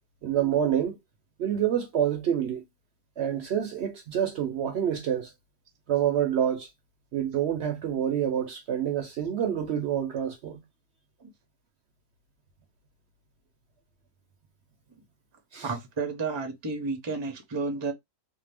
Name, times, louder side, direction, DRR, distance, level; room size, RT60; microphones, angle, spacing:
voice 1, 0.2-0.9 1.4-2.6 3.2-5.3 5.9-6.7 7.1-10.6 15.5-15.7, right 9 dB, 65° right, 0.7 m, -27 dB
voice 2, 15.6-17.9, right 4 dB, 30° right, 0.5 m, -31 dB
2.7 x 2.1 x 3.2 m
omnidirectional pair, 1.4 m